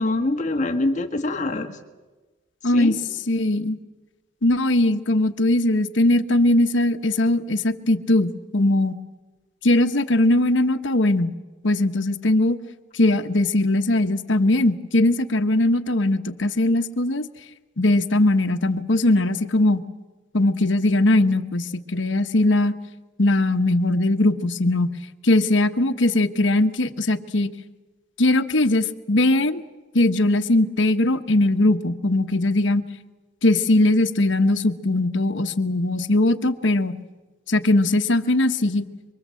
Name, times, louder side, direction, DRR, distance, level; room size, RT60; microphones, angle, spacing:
voice 1, 0.0-1.8 2.6-3.0, left 2 dB, 40° left, 5 dB, 1.6 m, -24 dB
voice 2, 2.6-2.9 3.3-3.8 4.4-8.9 9.6-11.3 11.6-12.6 12.9-17.3 17.8-19.8 20.3-21.7 21.9-22.7 23.2-24.9 25.2-27.5 28.2-29.6 29.9-32.8 33.4-36.9 37.5-38.8, left 1 dB, 70° left, 8 dB, 1.2 m, -20 dB
24.5 x 24.0 x 7.7 m, 1.2 s
head